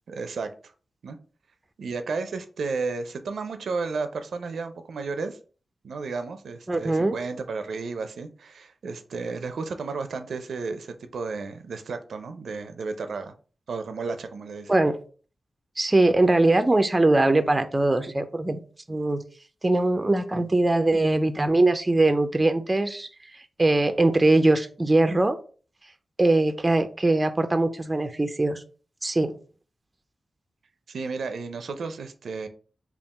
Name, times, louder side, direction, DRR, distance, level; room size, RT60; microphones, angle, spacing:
voice 1, 0.1-0.7 1.0-1.2 1.8-5.4 5.8-13.3 13.7-14.7 30.9-32.5, right 4 dB, 80° right, 0.5 m, -33 dB
voice 2, 6.7-7.1 14.7-15.0 15.8-18.6 18.9-19.2 19.6-23.1 23.6-25.4 26.2-28.6 29.0-29.3, right 2 dB, 20° right, 0.4 m, -21 dB
3.6 x 2.4 x 4.0 m
wide cardioid pair, 90°, 0 cm